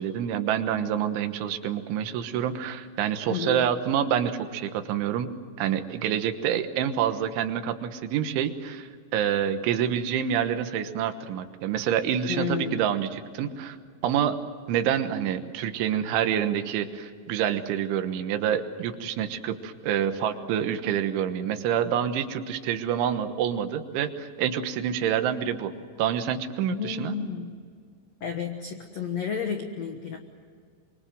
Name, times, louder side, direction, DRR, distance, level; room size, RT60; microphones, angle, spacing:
voice 1, 0.0-5.3 5.6-13.8 14.0-14.4 14.7-25.7 26.0-27.2, right 9 dB, 85° right, 8 dB, 3.7 m, -27 dB
voice 2, 3.3-3.7 12.3-12.8 26.7-27.5 28.2-30.2, left 7 dB, 85° left, 5 dB, 1.4 m, -31 dB
25.0 x 24.5 x 7.7 m, 2.1 s
omnidirectional pair, 5.3 m